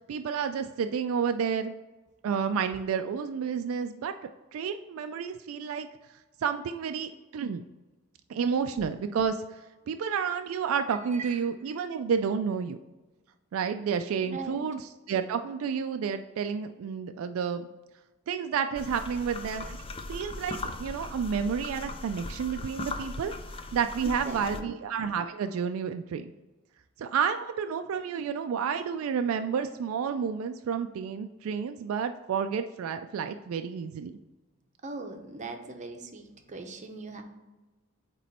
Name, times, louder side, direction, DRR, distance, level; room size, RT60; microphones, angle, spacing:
voice 1, 0.1-1.7 2.2-5.9 6.4-7.6 8.3-9.6 9.9-12.8 13.5-17.7 18.3-19.8 20.1-23.3 23.7-26.3 27.0-34.1, right 6 dB, 70° right, 8 dB, 0.3 m, -30 dB
voice 2, 14.3-14.6 24.0-24.7 34.8-37.2, right 3 dB, 35° right, 4 dB, 0.7 m, -40 dB
sound 1, 18.8-24.6, left 2 dB, 25° left, 0.4 m, -39 dB
8.4 x 3.1 x 4.2 m, 1.2 s
head